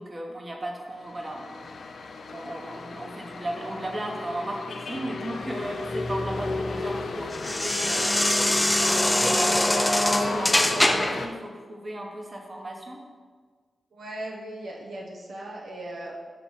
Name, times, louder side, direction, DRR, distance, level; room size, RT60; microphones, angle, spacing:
voice 1, 0.0-1.7 2.3-13.0, right 1 dB, 40° right, 1 dB, 1.1 m, -36 dB
sound 1, 0.9-11.3, left 4 dB, 75° left, 0.5 m, -36 dB
sound 2, 5.4-11.3, left 1 dB, 15° left, 0.6 m, -24 dB
voice 2, 13.9-16.1, right 1 dB, 80° right, -3 dB, 0.9 m, -38 dB
6.9 x 3.1 x 5.6 m, 1.5 s
cardioid pair, 45°, 0 cm